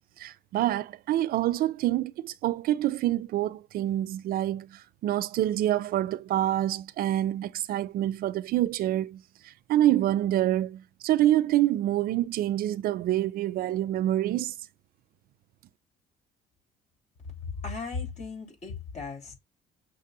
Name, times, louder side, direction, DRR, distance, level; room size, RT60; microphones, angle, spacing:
voice 1, 0.2-14.5, right 13 dB, 60° right, 0.4 m, -27 dB
voice 2, 17.6-19.3, left 4 dB, 45° left, 3.0 m, -36 dB
6.6 x 2.4 x 2.6 m
cardioid pair, 110°, 17 cm